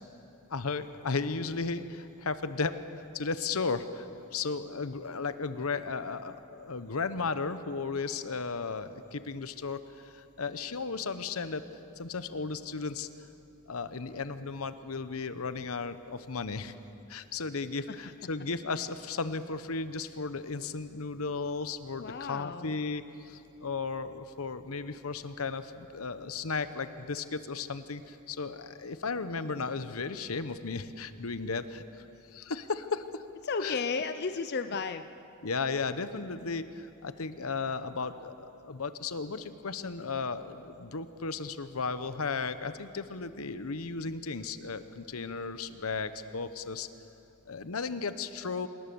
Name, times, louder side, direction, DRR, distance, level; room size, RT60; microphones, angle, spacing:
voice 1, 0.5-4.0 4.3-11.6 12.0-13.1 13.7-16.7 17.1-32.0 32.3-33.2 33.6-33.8 35.4-46.9 47.5-48.7, left 4 dB, 80° left, 12 dB, 1.0 m, -35 dB
voice 2, 22.0-22.8 33.4-35.1, left 4 dB, 50° left, 10 dB, 0.6 m, -33 dB
26.5 x 19.0 x 7.0 m, 2.9 s
head